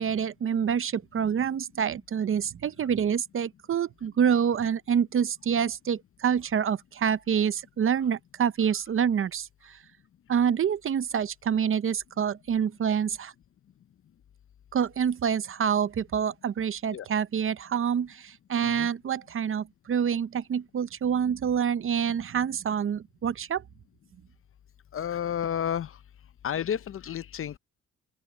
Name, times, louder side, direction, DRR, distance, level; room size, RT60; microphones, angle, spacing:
voice 1, 0.0-9.8 10.3-13.3 14.7-23.6, right 8 dB, 45° right, 0.8 m, -27 dB
voice 2, 24.9-26.0 26.4-27.6, left 9 dB, 45° left, 0.6 m, -31 dB
open air
cardioid pair, 90°, 30 cm